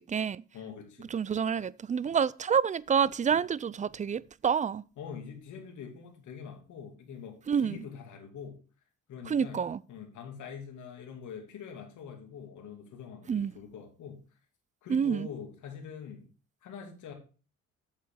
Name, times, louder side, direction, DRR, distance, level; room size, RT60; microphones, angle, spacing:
voice 1, 0.0-0.4 1.1-4.8 7.5-7.8 9.3-9.8 13.3-13.5 14.9-15.3, right 7 dB, 25° right, 0.4 m, -28 dB
voice 2, 0.5-1.1 2.0-2.2 3.3-3.4 5.0-8.6 9.1-9.6 9.9-14.2 14.8-16.3 16.6-17.1, left 7 dB, 75° left, 2.6 m, -44 dB
8.6 x 7.3 x 3.7 m
cardioid pair, 90°, 30 cm